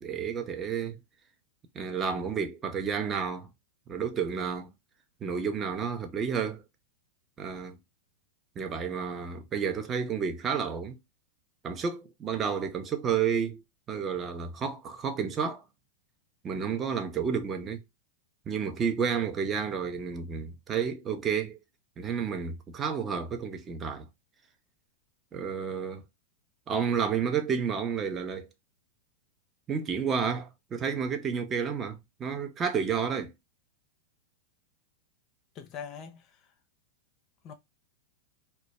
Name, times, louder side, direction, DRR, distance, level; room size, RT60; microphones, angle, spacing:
voice 1, 0.0-1.0 1.7-3.5 3.9-4.7 5.2-6.6 7.4-7.8 8.6-11.0 11.6-13.6 13.9-15.6 16.4-17.8 18.5-21.6 22.0-24.0 25.3-26.0 26.7-28.5 29.7-33.3, right 6 dB, 25° right, 0.5 m, -31 dB
voice 2, 35.5-36.4 37.4-37.5, left 7 dB, 40° left, 0.5 m, -42 dB
2.1 x 2.0 x 2.8 m
hypercardioid pair, 115°, 0 cm